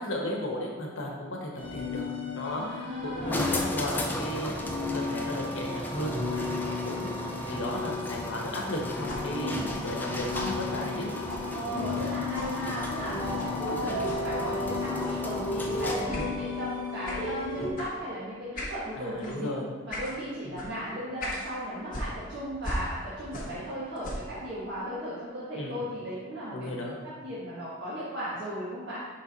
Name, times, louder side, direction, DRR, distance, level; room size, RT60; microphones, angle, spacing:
voice 1, 0.0-2.1 2.3-4.5 4.9-9.6 9.8-11.1 16.1-16.3 19.0-19.7 20.4-20.6 25.5-25.8 26.5-27.0, left 1 dB, 75° left, -1 dB, 1.2 m, -35 dB
sound 1, 1.6-17.7, left 3 dB, 25° left, 1.6 m, -34 dB
voice 2, 2.6-3.7 9.3-9.7 11.5-13.2 13.5-19.5 19.8-29.0, equal, 60° right, -10 dB, 1.4 m, -36 dB
sound 2, 3.3-16.2, left 1 dB, 10° left, 0.4 m, -35 dB
sound 3, 9.1-12.1 12.3-12.6 13.3-13.6 14.0-14.3 15.0-15.3 16.1-16.3 17.0-17.3 17.7-17.9 18.5-18.8 19.2-19.4 19.9-20.1 20.6-20.7 21.2-21.5 21.9-23.7 24.0-24.3, left 1 dB, 45° left, 1.3 m, -38 dB
5.8 x 4.5 x 4.1 m, 1.4 s
head